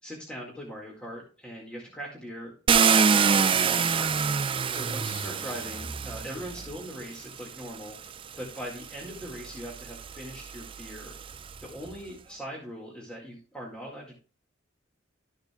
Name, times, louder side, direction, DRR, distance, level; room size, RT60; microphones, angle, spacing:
voice 1, 0.0-11.2 11.6-14.1, equal, 5° left, -3 dB, 2.0 m, -41 dB
Car, 2.7-6.8 7.7-7.8 8.4-11.6, right 6 dB, 25° right, 0.4 m, -26 dB
13.0 x 6.6 x 2.3 m, 0.38 s
head